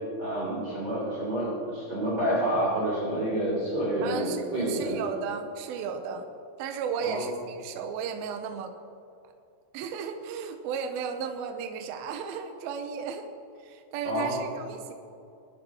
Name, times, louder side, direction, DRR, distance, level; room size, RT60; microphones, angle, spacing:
voice 1, 0.2-5.0 7.0-7.3 14.0-14.4, right 1 dB, 35° right, -8 dB, 3.9 m, -28 dB
voice 2, 4.0-6.3 6.6-8.7 9.7-13.3 13.6-14.9, right 6 dB, 75° right, 5 dB, 2.4 m, -34 dB
20.5 x 11.0 x 3.0 m, 2.6 s
omnidirectional pair, 4.8 m